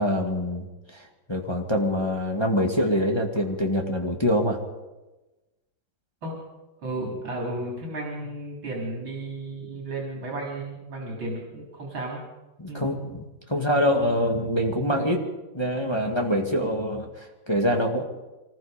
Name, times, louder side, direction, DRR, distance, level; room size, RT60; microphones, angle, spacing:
voice 1, 0.0-4.6 12.6-15.3 15.5-18.0, equal, 15° left, 1 dB, 2.1 m, -25 dB
voice 2, 6.8-12.2 12.7-12.9, right 2 dB, 80° right, -1 dB, 4.4 m, -33 dB
25.0 x 20.0 x 5.2 m, 1.1 s
omnidirectional pair, 2.1 m